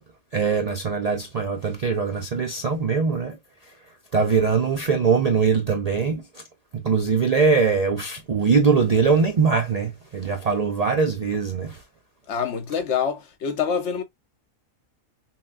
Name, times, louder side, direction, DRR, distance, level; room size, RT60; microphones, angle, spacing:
voice 1, 0.3-3.4 4.1-6.2 6.7-11.8, right 5 dB, 90° right, 0.3 m, -22 dB
voice 2, 12.3-14.0, left 7 dB, 60° left, 1.0 m, -26 dB
5.8 x 2.2 x 2.4 m
omnidirectional pair, 1.5 m